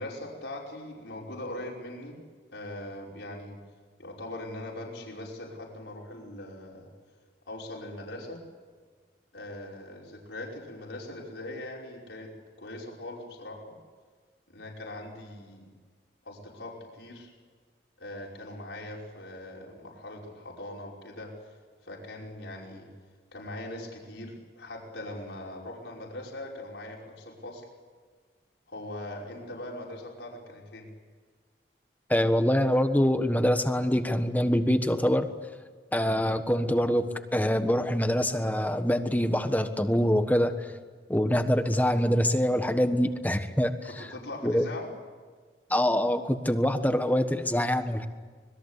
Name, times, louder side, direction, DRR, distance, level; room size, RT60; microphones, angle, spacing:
voice 1, 0.0-2.2 2.5-3.6 4.0-6.9 7.5-8.4 9.3-12.3 12.6-13.8 14.5-15.7 16.2-17.3 18.0-21.5 21.8-22.9 23.3-27.7 28.7-30.9 43.8-44.9, left 1 dB, 90° left, -2 dB, 5.5 m, -41 dB
voice 2, 32.1-35.3 35.9-40.5 41.1-43.7 44.4-44.6 45.7-48.1, equal, 10° left, 8 dB, 1.3 m, -25 dB
26.0 x 21.0 x 8.2 m, 1.5 s
head